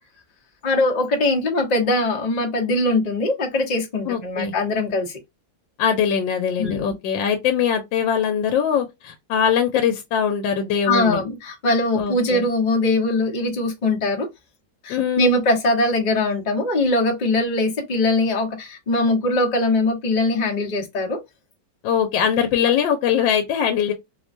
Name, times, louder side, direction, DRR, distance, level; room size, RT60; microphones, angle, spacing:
voice 1, 0.6-5.2 6.6-6.9 10.9-14.3 14.8-21.2, left 2 dB, 45° left, 0.5 m, -21 dB
voice 2, 4.1-4.5 5.8-11.2 12.0-12.5 14.9-15.4 21.8-23.9, left 8 dB, 80° left, 1.3 m, -22 dB
3.2 x 2.2 x 2.5 m
omnidirectional pair, 2.1 m